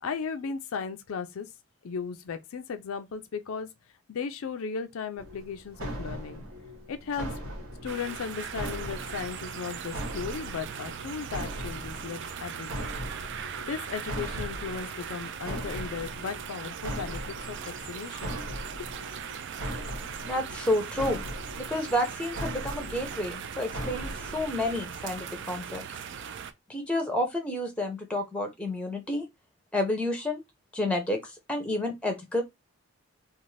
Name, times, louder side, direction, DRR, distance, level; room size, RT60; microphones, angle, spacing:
voice 1, 0.0-1.5 1.8-3.7 4.1-6.4 6.9-7.3 7.8-12.9 13.7-18.4, left 6 dB, 75° left, 0.4 m, -36 dB
sound 1, 5.2-25.1, equal, 70° right, 1.1 m, -40 dB
sound 2, 7.9-26.5, right 7 dB, 55° right, 0.3 m, -39 dB
voice 2, 20.2-21.2 21.5-25.8 26.7-29.2 29.7-30.4 30.7-32.4, left 1 dB, 5° left, 0.6 m, -30 dB
2.5 x 2.5 x 3.1 m
head